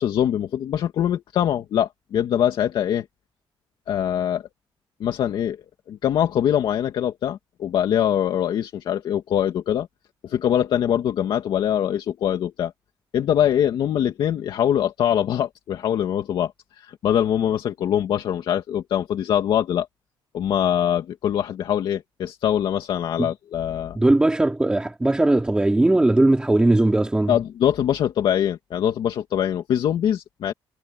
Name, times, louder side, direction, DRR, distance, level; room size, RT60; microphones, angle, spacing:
voice 1, 0.0-3.1 3.9-4.4 5.0-5.6 5.9-9.9 10.2-12.7 13.1-19.9 20.3-24.0 27.3-30.5, left 10 dB, 60° left, 2.2 m, -23 dB
voice 2, 23.9-27.4, right 2 dB, 10° right, 4.0 m, -19 dB
cardioid pair, 170°, 9 cm